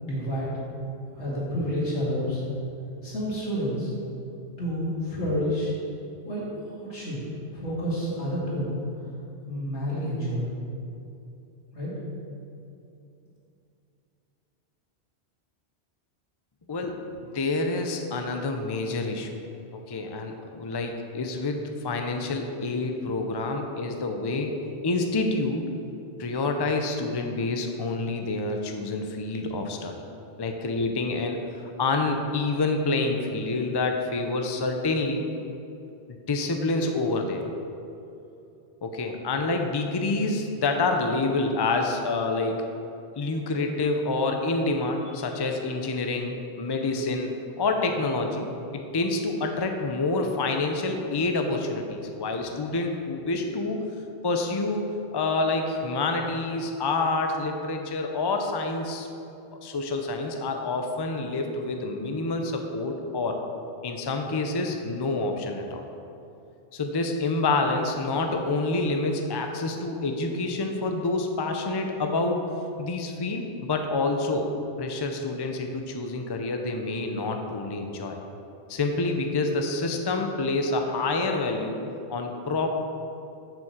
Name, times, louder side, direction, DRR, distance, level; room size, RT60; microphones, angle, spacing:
voice 1, 0.0-0.5 1.1-2.5 3.0-3.9 4.6-5.7 6.2-7.2 7.5-8.7 9.4-10.4 11.7-11.9, equal, 85° left, -7 dB, 2.8 m, -29 dB
voice 2, 16.7-19.3 19.7-24.6 24.8-25.7 26.2-29.9 30.4-31.4 31.8-35.2 36.3-37.4 38.8-42.7 43.2-47.3 47.6-48.5 48.7-53.8 54.2-59.1 59.6-63.4 63.8-65.8 66.7-72.4 72.8-74.5 74.8-78.2 78.7-81.8 82.1-82.7, left 3 dB, 30° left, 4 dB, 0.6 m, -27 dB
7.3 x 5.5 x 7.3 m, 2.7 s
omnidirectional pair, 1.1 m